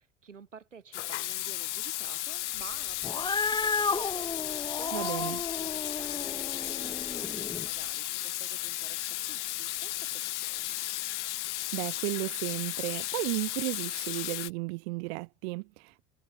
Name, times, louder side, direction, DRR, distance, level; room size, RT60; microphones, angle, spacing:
voice 1, 0.0-10.8, right 6 dB, 85° right, 3.1 m, -51 dB
Water tap faucet / Sink (filling or washing), 0.9-14.5, left 16 dB, 70° left, 1.1 m, -34 dB
Cat, 3.0-7.7, left 4 dB, 10° left, 1.0 m, -33 dB
voice 2, 4.9-5.4 11.7-16.0, right 26 dB, 60° right, 0.5 m, -34 dB
figure-of-eight pair, 65°, 37 cm